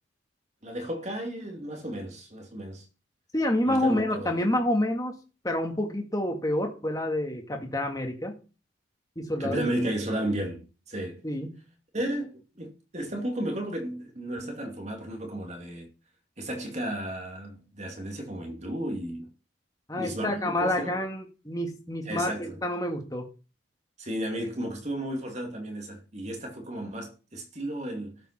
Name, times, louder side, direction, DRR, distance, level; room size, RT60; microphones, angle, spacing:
voice 1, 0.6-2.9 3.6-4.4 9.4-11.2 11.9-15.9 16.4-19.3 19.9-20.9 22.0-22.6 24.0-28.2, right 1 dB, 35° right, 2.5 m, -33 dB
voice 2, 3.3-5.2 5.4-8.3 9.2-9.7 11.2-11.5 19.9-23.3, left 1 dB, 20° left, 2.1 m, -28 dB
13.0 x 5.8 x 6.0 m
head